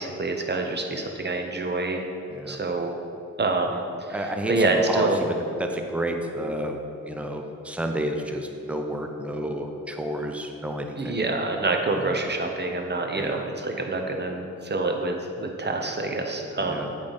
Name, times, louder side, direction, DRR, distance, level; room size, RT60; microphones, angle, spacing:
voice 1, 0.0-2.1 2.5-2.9 3.4-5.2 11.0-16.8, right 3 dB, 35° right, 3 dB, 0.8 m, -27 dB
voice 2, 4.1-5.3 5.6-6.8 7.1-11.2 11.9-12.1 13.1-13.4 16.7-16.9, right 1 dB, 5° right, 4 dB, 0.6 m, -30 dB
8.5 x 3.3 x 4.0 m, 2.6 s
supercardioid pair, 40°, 32 cm